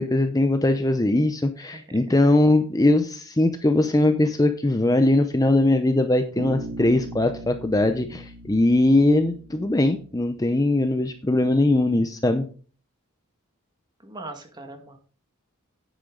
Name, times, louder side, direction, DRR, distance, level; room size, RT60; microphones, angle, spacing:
voice 1, 0.0-12.5, left 2 dB, 15° left, 8 dB, 0.6 m, -21 dB
voice 2, 1.6-2.2 14.0-15.0, right 2 dB, 20° right, 4 dB, 2.0 m, -41 dB
Bass guitar, 6.4-10.3, right 1 dB, 80° right, 1.2 m, -39 dB
10.0 x 8.3 x 3.9 m, 0.40 s
head